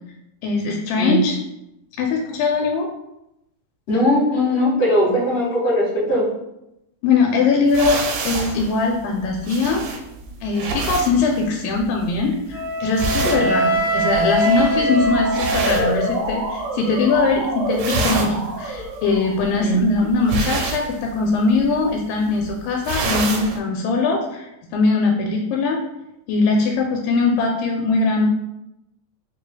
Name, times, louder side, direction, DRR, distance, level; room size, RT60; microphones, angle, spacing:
voice 1, 0.4-1.4 2.0-2.9 7.0-9.9 10.4-25.8 26.3-28.3, left 4 dB, 85° left, 1 dB, 2.2 m, -21 dB
voice 2, 3.9-6.3 13.2-13.5 19.6-19.8, equal, 60° left, -6 dB, 2.0 m, -19 dB
sound 1, 7.7-16.6 16.9-17.4 17.6-23.6, right 3 dB, 90° right, 2.3 m, -28 dB
Wind instrument woodwind instrument, 12.5-16.6, right 1 dB, 55° right, 1.7 m, -22 dB
Motor vehicle (road) / Siren, 13.8-19.7, right 1 dB, 75° right, 2.1 m, -29 dB
4.9 x 3.2 x 2.2 m, 0.87 s
omnidirectional pair, 3.8 m